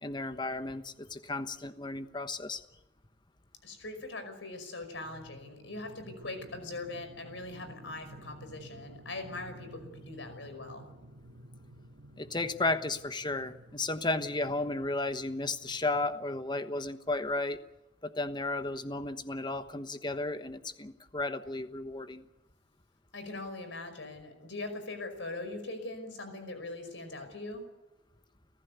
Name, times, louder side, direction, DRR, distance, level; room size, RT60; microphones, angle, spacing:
voice 1, 0.0-2.6 12.2-17.6 18.0-22.2, left 2 dB, 25° left, 10 dB, 1.2 m, -34 dB
voice 2, 3.6-10.8 23.1-27.6, left 2 dB, 75° left, 8 dB, 5.4 m, -41 dB
sound 1, 5.0-17.3, right 1 dB, 70° right, 2.5 m, -53 dB
30.0 x 15.0 x 8.3 m, 1.0 s
head